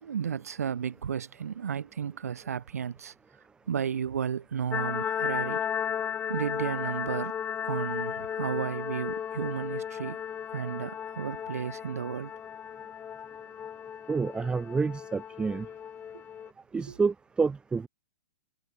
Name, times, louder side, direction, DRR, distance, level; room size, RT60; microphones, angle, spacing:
voice 1, 0.0-3.1 3.7-5.6 6.3-7.4 7.7-10.2 10.5-12.3 16.1-16.2 16.8-17.0, right 8 dB, 75° right, 0.8 m, -33 dB
sound 1, 4.7-16.5, left 8 dB, 20° left, 1.0 m, -35 dB
voice 2, 14.1-15.7 16.7-17.9, right 4 dB, 10° right, 0.8 m, -28 dB
hypercardioid pair, 110°, 8 cm